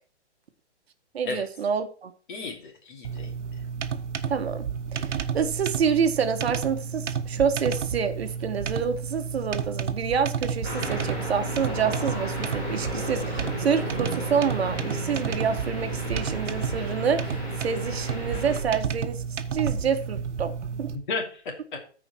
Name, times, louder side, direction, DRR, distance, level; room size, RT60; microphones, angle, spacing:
voice 1, 1.1-2.1 4.3-4.7 4.9-19.2 19.5-20.5 20.8-20.9, right 6 dB, 60° right, 1.2 m, -27 dB
voice 2, 2.3-3.6 20.9-21.8, left 3 dB, 45° left, 2.8 m, -34 dB
sound 1, 3.0-21.0, right 6 dB, 85° right, 1.2 m, -31 dB
sound 2, 10.6-18.6, left 1 dB, 10° left, 4.4 m, -34 dB
13.5 x 4.9 x 4.4 m
hypercardioid pair, 165°, 35 cm